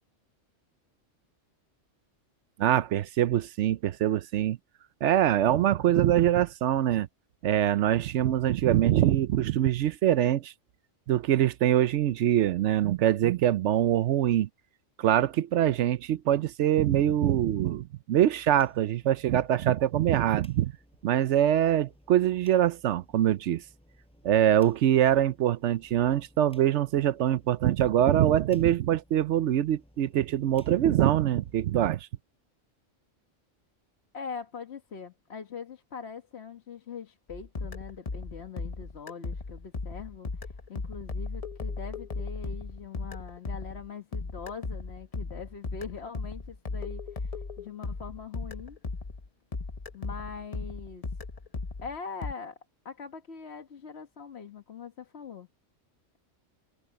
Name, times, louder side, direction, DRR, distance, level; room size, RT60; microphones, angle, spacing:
voice 1, 2.6-4.6 5.0-7.1 7.4-10.5 11.1-14.5 15.0-20.7 21.0-23.6 24.2-32.0, right 11 dB, 70° right, 0.9 m, -24 dB
sound 1, 18.1-31.6, equal, 5° left, 7.5 m, -60 dB
voice 2, 34.1-48.8 49.9-51.0 51.8-52.6 52.8-55.5, left 6 dB, 55° left, 1.5 m, -42 dB
sound 2, 37.3-49.3 49.5-52.3, left 3 dB, 30° left, 0.9 m, -37 dB
omnidirectional pair, 1.3 m